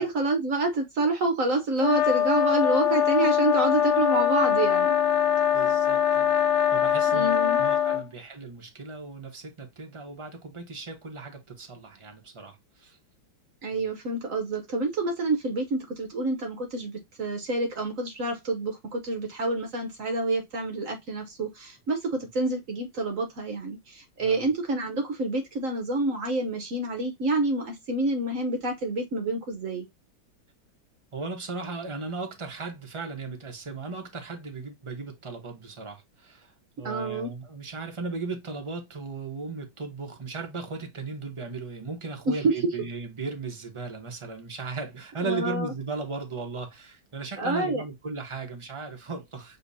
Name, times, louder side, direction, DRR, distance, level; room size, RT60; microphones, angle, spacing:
voice 1, 0.0-5.0 7.1-7.6 13.6-29.9 36.8-37.3 42.3-42.7 45.2-45.7 47.4-47.8, right 2 dB, 55° right, 1.1 m, -28 dB
sound 1, 1.8-8.0, left 9 dB, 75° left, 1.1 m, -23 dB
voice 2, 5.5-6.3 6.7-7.3 7.6-13.0 13.7-13.8 22.2-22.3 24.2-24.5 31.1-36.5 36.8-49.6, right 4 dB, 25° right, 0.8 m, -36 dB
6.7 x 2.9 x 2.7 m
omnidirectional pair, 1.8 m